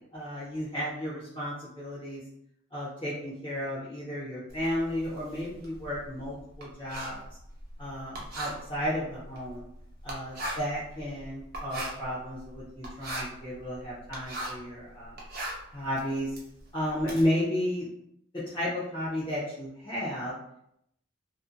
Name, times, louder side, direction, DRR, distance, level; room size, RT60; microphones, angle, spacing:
voice 1, 0.1-2.2 2.7-7.2 7.8-9.6 10.0-15.1 15.7-16.3 16.7-17.9 18.3-20.3, equal, 25° left, -10 dB, 0.6 m, -33 dB
Writing, 4.5-14.7 15.0-17.2, right 1 dB, 45° right, 0.6 m, -39 dB
2.6 x 2.5 x 2.4 m, 0.76 s
head